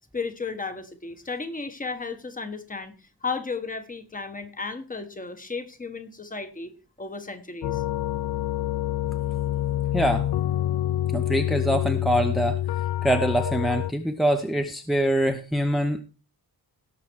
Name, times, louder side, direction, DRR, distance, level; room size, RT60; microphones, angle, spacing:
voice 1, 0.0-2.9 3.2-6.7 7.0-7.8, left 4 dB, 20° left, 8 dB, 1.4 m, -34 dB
sound 1, 7.6-13.9, left 13 dB, 75° left, 0.6 m, -27 dB
voice 2, 9.9-10.3 11.1-12.6 13.0-16.0, right 1 dB, ahead, 6 dB, 0.8 m, -24 dB
17.5 x 6.8 x 4.6 m, 0.33 s
wide cardioid pair, 170°, 37 cm